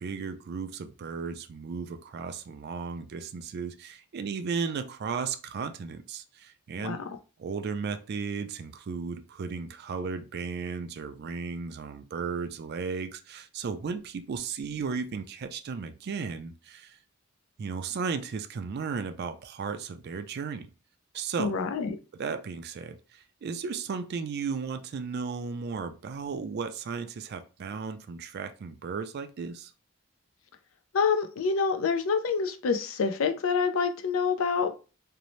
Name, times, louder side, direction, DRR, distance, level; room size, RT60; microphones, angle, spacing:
voice 1, 0.0-7.0 7.4-17.0 17.6-20.7 21.1-21.5 22.1-29.7, right 5 dB, 50° right, 0.3 m, -35 dB
voice 2, 6.8-7.1 21.4-22.0 30.9-34.7, left 5 dB, 70° left, 0.4 m, -27 dB
2.6 x 2.0 x 3.0 m
head